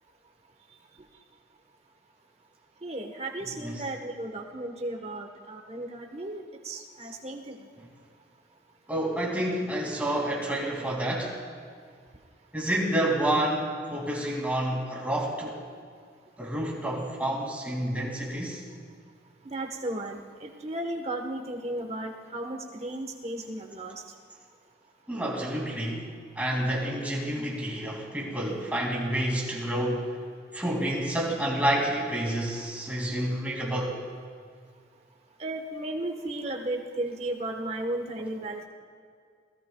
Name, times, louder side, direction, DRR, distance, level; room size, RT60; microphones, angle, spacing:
voice 1, 2.8-7.6 11.2-11.3 19.4-23.9 35.4-38.7, right 1 dB, 35° right, 3 dB, 1.2 m, -35 dB
voice 2, 3.4-3.8 8.9-11.4 12.5-15.6 16.4-18.6 25.1-26.1 26.4-30.0 30.5-33.9, right 1 dB, 10° right, -3 dB, 2.5 m, -29 dB
26.5 x 18.0 x 2.3 m, 2.1 s
head